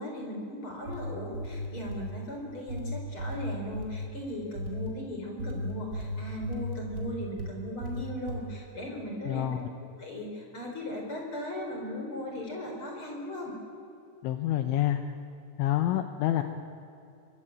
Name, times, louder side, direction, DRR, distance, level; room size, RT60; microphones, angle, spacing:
voice 1, 0.0-13.5, left 1 dB, 25° left, 0 dB, 4.7 m, -38 dB
sound 1, 0.7-2.1 2.7-4.1 4.5-4.9 5.4-7.5 7.8-8.4, left 1 dB, 20° right, 3.4 m, -35 dB
voice 2, 9.3-9.7 14.2-15.0 15.6-16.4, left 13 dB, 75° left, 8 dB, 3.1 m, -27 dB
24.0 x 22.5 x 8.9 m, 2.7 s
omnidirectional pair, 5.9 m